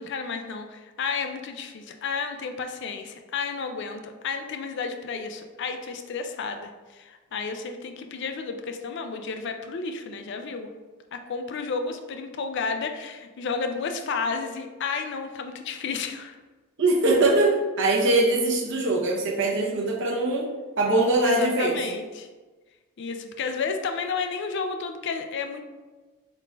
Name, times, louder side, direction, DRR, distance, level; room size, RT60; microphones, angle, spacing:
voice 1, 0.0-10.7 11.1-16.3 21.2-22.3 23.0-25.6, left 5 dB, 50° left, 6 dB, 0.3 m, -32 dB
voice 2, 16.8-20.5 20.8-21.8, right 2 dB, 55° right, -2 dB, 0.8 m, -22 dB
3.8 x 2.4 x 4.4 m, 1.3 s
head